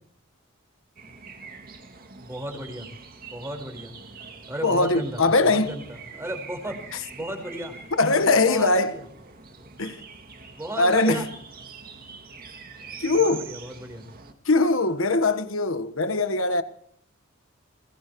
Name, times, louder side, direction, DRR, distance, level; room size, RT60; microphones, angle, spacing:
sound 1, 1.0-14.3, right 5 dB, 45° right, 2.4 m, -44 dB
voice 1, 2.2-2.9 3.3-3.9 4.5-5.8 6.1-6.9 7.1-7.8 8.3-9.0 9.6-9.7 10.6-11.3 13.1-14.0, right 1 dB, 15° right, 4.6 m, -34 dB
voice 2, 4.6-5.7 6.9-7.0 8.0-9.0 9.8-10.0 10.8-11.3 13.0-13.5 14.4-16.6, left 3 dB, 65° left, 1.4 m, -21 dB
21.5 x 20.0 x 3.1 m
head